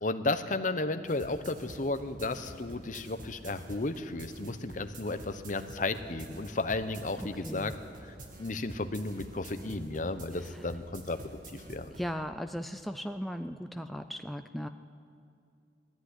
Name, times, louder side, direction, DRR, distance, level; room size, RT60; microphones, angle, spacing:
voice 1, 0.0-7.7 8.4-11.2 11.5-11.9, left 2 dB, 45° left, 10 dB, 0.9 m, -33 dB
sound 1, 1.1-12.1, right 1 dB, 50° right, 2.2 m, -48 dB
voice 2, 7.2-7.7 10.4-10.7 11.9-14.7, equal, ahead, 7 dB, 0.4 m, -38 dB
19.5 x 14.0 x 9.9 m, 2.4 s
head